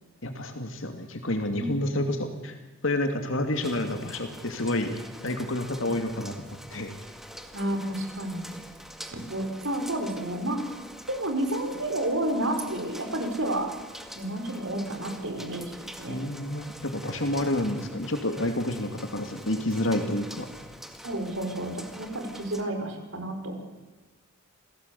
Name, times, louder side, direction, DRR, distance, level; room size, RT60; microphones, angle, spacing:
voice 1, 0.2-2.6 2.8-6.9 16.1-20.5, left 1 dB, 65° left, 5 dB, 2.5 m, -29 dB
sound 1, 3.5-22.6, equal, ahead, 1.8 m, -45 dB
voice 2, 7.5-8.6 9.0-10.6 11.1-13.7 14.1-16.2 21.0-23.7, right 1 dB, 70° right, 5 dB, 5.1 m, -31 dB
28.0 x 18.0 x 8.5 m, 1.2 s
head